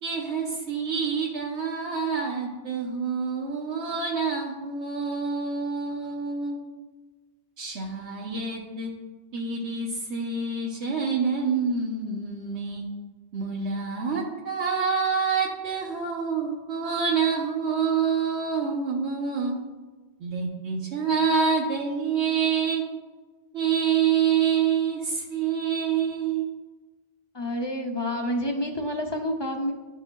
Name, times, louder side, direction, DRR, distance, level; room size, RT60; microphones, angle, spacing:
voice 1, 0.0-6.6 7.6-8.9 9.3-12.9 13.3-19.6 20.2-22.8 23.5-26.5, right 6 dB, 85° right, -4 dB, 1.2 m, -27 dB
voice 2, 27.3-29.7, left 1 dB, 30° left, 3 dB, 0.5 m, -28 dB
11.5 x 5.3 x 2.3 m, 1.3 s
omnidirectional pair, 1.1 m